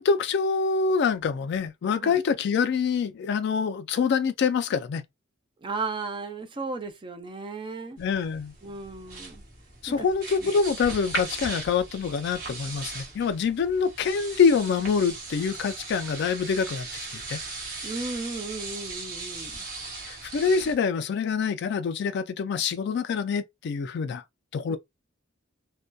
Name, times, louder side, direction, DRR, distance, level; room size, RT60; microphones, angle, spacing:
voice 1, 0.0-5.0 8.0-8.5 9.8-17.4 20.1-24.2 24.5-24.8, left 5 dB, 55° left, 0.3 m, -25 dB
voice 2, 5.6-8.0 8.6-9.4 9.9-10.1 10.4-10.5 17.8-19.7 24.7-24.8, right 3 dB, 25° right, 0.4 m, -35 dB
sound 1, 8.0-20.7, right 3 dB, 45° right, 1.0 m, -38 dB
2.6 x 2.1 x 2.2 m
head